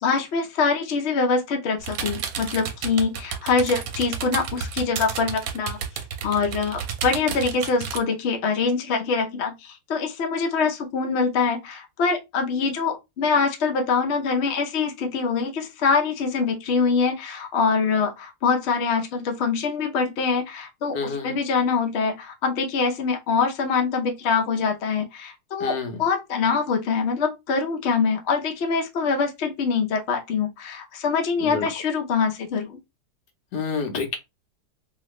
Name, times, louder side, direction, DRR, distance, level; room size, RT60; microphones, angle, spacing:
voice 1, 0.0-5.8 6.2-32.8, left 5 dB, 55° left, 0.8 m, -24 dB
sound 1, 1.8-8.0, right 7 dB, 70° right, 1.0 m, -31 dB
voice 2, 20.9-21.4 25.6-26.0 31.4-31.7 33.5-34.2, left 5 dB, 80° left, 1.3 m, -28 dB
2.9 x 2.4 x 3.0 m
omnidirectional pair, 1.8 m